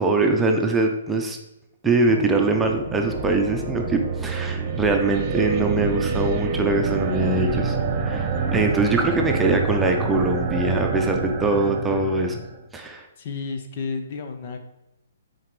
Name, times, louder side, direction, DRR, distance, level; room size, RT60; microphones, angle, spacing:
voice 1, 0.0-1.4 1.8-12.4 12.7-13.1, right 2 dB, 10° right, 2 dB, 0.8 m, -22 dB
sound 1, 2.1-12.6, right 5 dB, 35° right, 1.0 m, -27 dB
voice 2, 13.2-14.6, left 4 dB, 50° left, 6 dB, 1.0 m, -31 dB
9.2 x 4.5 x 3.3 m, 0.93 s
hypercardioid pair, 130°, 0 cm